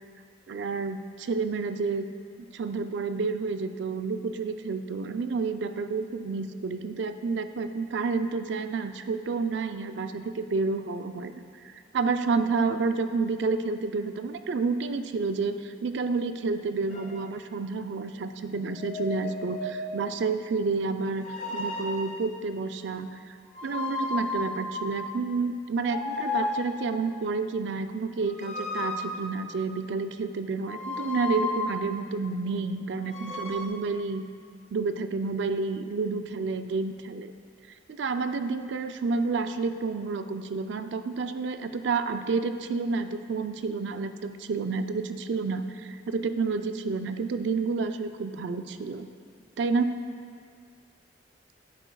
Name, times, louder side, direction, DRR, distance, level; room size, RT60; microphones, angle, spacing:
voice 1, 0.5-2.1 2.5-21.3 21.5-23.4 23.6-34.3 34.7-37.3 37.9-49.1 49.6-49.9, right 4 dB, 75° right, 9 dB, 0.4 m, -30 dB
sound 1, 16.9-17.2 18.6-20.2 21.2-22.3 23.5-25.3 25.8-27.0 28.3-29.8 30.6-32.0 33.0-33.7, left 2 dB, 40° left, 0.6 m, -34 dB
10.0 x 7.9 x 2.3 m, 2.1 s
head